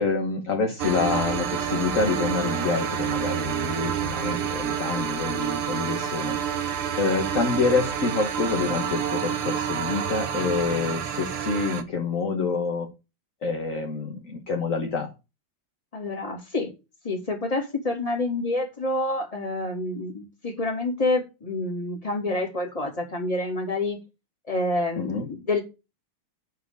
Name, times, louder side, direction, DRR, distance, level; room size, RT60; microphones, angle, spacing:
voice 1, 0.0-12.9 13.4-15.1 25.0-25.3, left 4 dB, 40° left, 2 dB, 1.6 m, -27 dB
sound 1, 0.8-11.8, right 8 dB, 85° right, 2.0 m, -28 dB
voice 2, 15.9-16.7 17.0-24.0 24.4-25.6, left 2 dB, 15° left, 1 dB, 2.6 m, -28 dB
9.5 x 4.5 x 6.7 m, 0.28 s
omnidirectional pair, 2.3 m